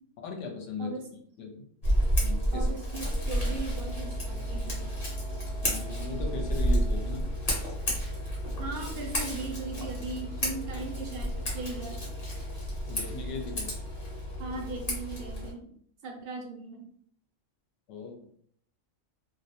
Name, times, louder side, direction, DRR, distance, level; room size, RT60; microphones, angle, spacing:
voice 1, 0.2-0.9 1.4-1.6 2.2-2.7 5.6-7.3 10.7-10.8 12.9-13.7 17.9-18.3, left 4 dB, 70° left, 2 dB, 0.9 m, -38 dB
Scissors, 1.8-15.5, equal, 35° left, 0.7 m, -31 dB
voice 2, 2.5-4.9 8.6-12.0 14.4-15.7 16.0-16.9, right 3 dB, 60° right, 1 dB, 0.6 m, -38 dB
2.3 x 2.0 x 2.8 m, 0.62 s
omnidirectional pair, 1.3 m